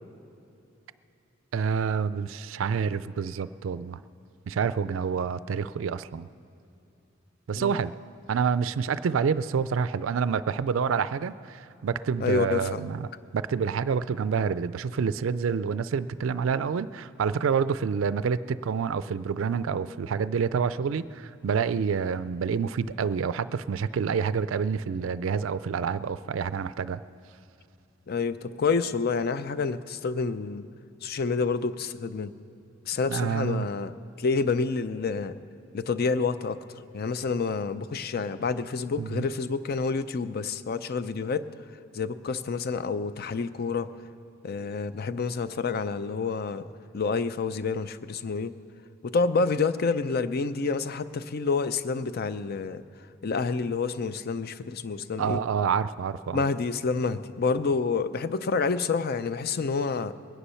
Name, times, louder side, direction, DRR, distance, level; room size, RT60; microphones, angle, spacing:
voice 1, 1.5-4.0 4.5-6.3 7.5-7.9 8.3-13.1 13.3-27.0 33.1-33.7 39.0-39.3 55.2-56.4, right 6 dB, 75° right, 15 dB, 0.4 m, -28 dB
voice 2, 12.2-12.9 28.1-30.7 31.0-32.3 32.9-35.4 35.7-36.6 36.9-41.5 41.9-43.9 44.4-46.7 46.9-48.5 49.0-52.8 53.2-55.4 56.3-60.1, left 4 dB, 50° left, 13 dB, 0.5 m, -28 dB
21.5 x 10.0 x 5.6 m, 2.7 s
head